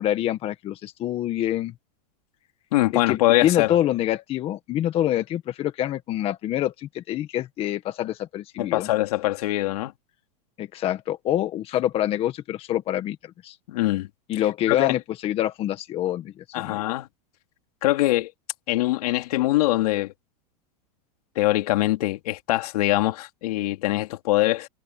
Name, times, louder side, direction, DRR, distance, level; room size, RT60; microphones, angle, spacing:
voice 1, 0.0-1.7 2.9-8.9 10.6-13.2 13.4-13.6 14.3-16.8, left 12 dB, 30° left, 1.5 m, -26 dB
voice 2, 2.7-3.8 8.6-9.9 13.7-14.1 14.7-15.0 16.5-17.1 17.8-18.3 18.7-20.1 21.3-24.7, left 17 dB, 70° left, 3.0 m, -23 dB
supercardioid pair, 155°, 20 cm